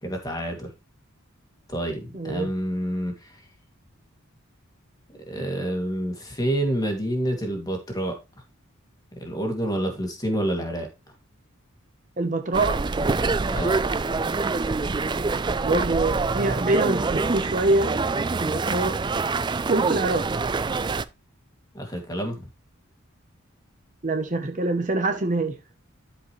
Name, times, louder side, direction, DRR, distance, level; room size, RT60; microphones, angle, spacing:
voice 1, 0.0-0.7 1.7-3.4 5.1-8.1 9.2-10.9 13.5-13.8 21.7-22.5, right 1 dB, 20° left, 2.4 m, -28 dB
voice 2, 2.1-2.5 12.2-12.8 15.6-19.0 19.7-20.3 24.0-25.6, right 2 dB, 35° right, 0.9 m, -25 dB
sound 1, 12.5-21.0, right 4 dB, 20° right, 0.3 m, -25 dB
12.5 x 5.1 x 3.2 m
head